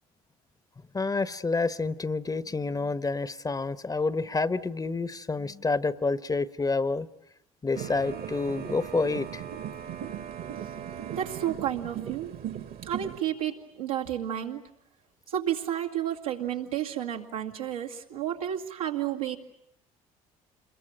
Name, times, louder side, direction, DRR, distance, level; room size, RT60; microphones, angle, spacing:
voice 1, 0.9-7.1 7.6-9.4, left 3 dB, 20° left, 15 dB, 0.9 m, -28 dB
sound 1, 7.8-13.2, right 9 dB, 55° right, 1.7 m, -38 dB
voice 2, 11.1-12.3 12.8-14.6 15.3-19.4, right 11 dB, 90° right, -2 dB, 2.3 m, -31 dB
28.0 x 22.0 x 9.0 m, 0.80 s
hypercardioid pair, 60°, 18 cm